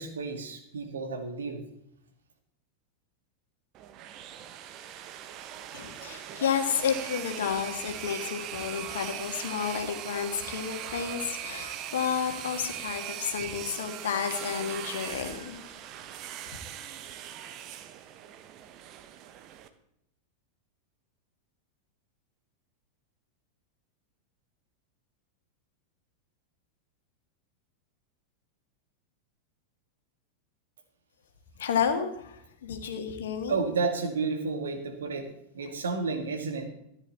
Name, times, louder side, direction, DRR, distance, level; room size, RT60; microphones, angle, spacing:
voice 1, 0.0-1.6 33.5-35.2 35.5-36.7, right 4 dB, 65° right, 4 dB, 2.2 m, -31 dB
sound 1, 3.7-19.7, right 11 dB, 35° right, 1.0 m, -40 dB
voice 2, 5.7-15.6 31.6-33.6, left 7 dB, 60° left, 6 dB, 1.8 m, -31 dB
14.5 x 10.5 x 4.2 m, 0.77 s
figure-of-eight pair, 90°, 0 cm